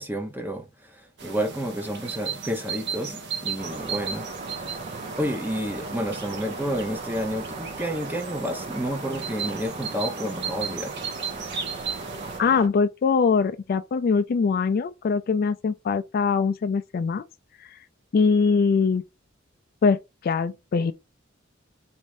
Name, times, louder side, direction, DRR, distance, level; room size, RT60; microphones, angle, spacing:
voice 1, 0.0-4.3 4.6-4.8 5.2-11.0, equal, 10° right, 0.8 m, -30 dB
sound 1, 1.2-12.4, right 6 dB, 60° right, 1.0 m, -35 dB
sound 2, 3.6-12.7, right 3 dB, 35° right, 0.5 m, -38 dB
voice 2, 12.4-17.2 17.6-17.8 18.1-19.0 19.8-20.9, left 5 dB, 50° left, 0.3 m, -22 dB
4.2 x 2.6 x 4.8 m
head